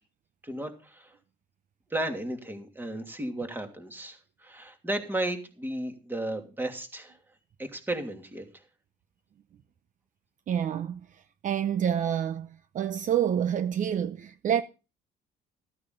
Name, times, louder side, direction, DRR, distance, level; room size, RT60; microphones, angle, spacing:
voice 1, 0.4-1.1 1.9-7.2 7.6-8.4, right 1 dB, 10° right, 2.8 m, -34 dB
voice 2, 10.5-11.0 11.4-12.5 12.7-14.6, right 9 dB, 50° right, 0.8 m, -27 dB
15.0 x 9.4 x 4.0 m
cardioid pair, 110°, 17 cm